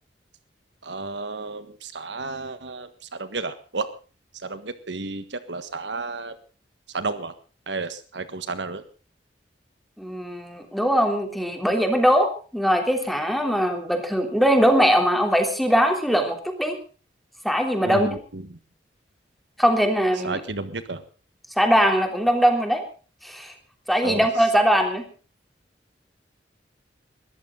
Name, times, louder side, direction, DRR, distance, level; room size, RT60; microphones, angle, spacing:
voice 1, 0.8-3.9 4.4-6.4 6.9-7.3 7.7-8.8 17.8-18.4 20.2-21.0 24.0-24.3, right 3 dB, 80° right, 11 dB, 1.5 m, -32 dB
voice 2, 10.0-16.8 17.4-18.1 19.6-20.4 21.6-22.8 23.2-23.5 23.9-25.0, equal, ahead, 4 dB, 3.3 m, -21 dB
21.5 x 14.0 x 3.8 m, 0.37 s
head